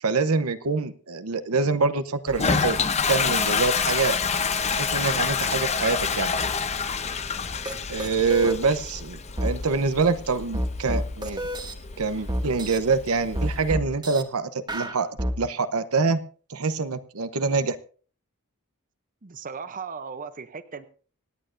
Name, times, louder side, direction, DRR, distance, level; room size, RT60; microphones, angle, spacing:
voice 1, 0.0-2.8 3.1-4.2 4.7-6.3 7.9-11.4 12.0-15.1 15.4-16.2 16.5-17.8, right 4 dB, 80° right, 12 dB, 0.8 m, -25 dB
Toilet flush, 2.3-13.7, left 5 dB, 30° left, 0.7 m, -28 dB
sound 1, 7.7-7.8 8.0-8.6 9.4-9.5 10.5-11.7 12.3-12.8 13.4-14.2 14.7-15.4, equal, 20° right, 1.1 m, -28 dB
voice 2, 19.2-20.9, right 5 dB, 40° right, 12 dB, 0.7 m, -37 dB
25.5 x 8.9 x 2.6 m, 0.41 s
head